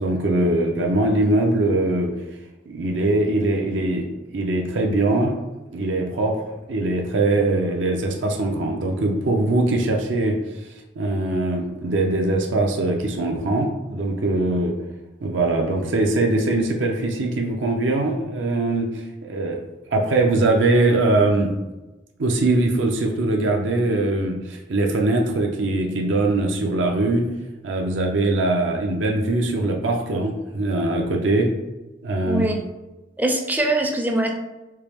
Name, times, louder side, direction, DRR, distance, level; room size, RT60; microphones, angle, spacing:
voice 1, 0.0-2.1 2.7-4.1 4.3-5.4 5.7-6.4 6.7-10.4 11.0-14.7 15.2-19.6 19.9-21.5 22.2-27.3 27.6-31.5 32.0-32.4, right 2 dB, 80° right, 1 dB, 0.6 m, -21 dB
voice 2, 32.3-32.6 33.2-34.3, right 1 dB, 10° right, 3 dB, 0.4 m, -22 dB
4.4 x 2.0 x 3.3 m, 1.1 s
head